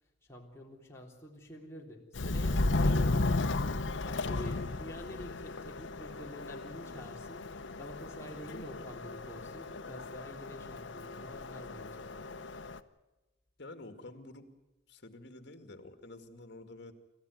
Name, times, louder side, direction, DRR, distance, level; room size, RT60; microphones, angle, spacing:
voice 1, 0.2-3.6 4.0-12.1, left 1 dB, 15° left, -2 dB, 3.6 m, -48 dB
Subway metro underground, 2.1-12.8, left 2 dB, 85° left, 0.9 m, -34 dB
voice 2, 13.6-14.5 14.9-16.9, left 2 dB, 65° left, 8 dB, 2.2 m, -49 dB
27.0 x 14.5 x 9.5 m, 1.0 s
head